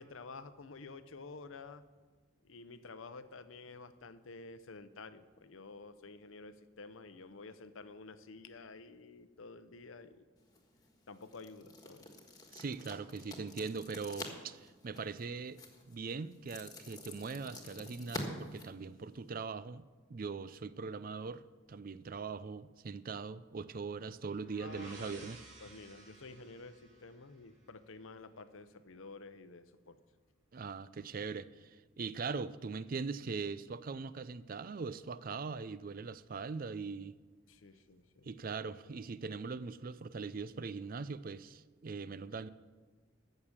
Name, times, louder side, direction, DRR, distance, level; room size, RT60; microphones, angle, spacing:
voice 1, 0.0-1.8 2.4-10.2 11.1-12.1 24.6-25.3 25.6-30.0 37.5-38.3, left 3 dB, 90° left, 12 dB, 0.8 m, -51 dB
sound 1, 10.4-19.4, left 2 dB, 20° left, 1.6 m, -48 dB
voice 2, 12.5-15.6 15.9-19.8 20.1-21.4 21.7-25.4 30.5-37.1 38.2-42.5, right 4 dB, 45° right, 15 dB, 0.5 m, -41 dB
sound 2, 24.1-27.9, right 2 dB, 60° right, 3.1 m, -56 dB
14.5 x 6.7 x 7.3 m, 1.3 s
head